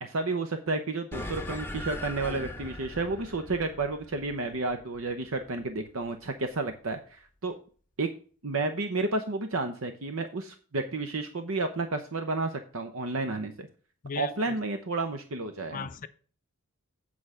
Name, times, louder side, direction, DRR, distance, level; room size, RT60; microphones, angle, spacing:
voice 1, 0.0-7.6 8.0-8.1 8.4-13.7 14.2-15.9, right 3 dB, 65° right, 0.8 m, -31 dB
sound 1, 1.1-5.9, left 1 dB, 10° left, 0.8 m, -40 dB
voice 2, 14.0-14.6 15.7-16.1, left 6 dB, 40° left, 0.5 m, -37 dB
8.6 x 4.9 x 5.6 m
head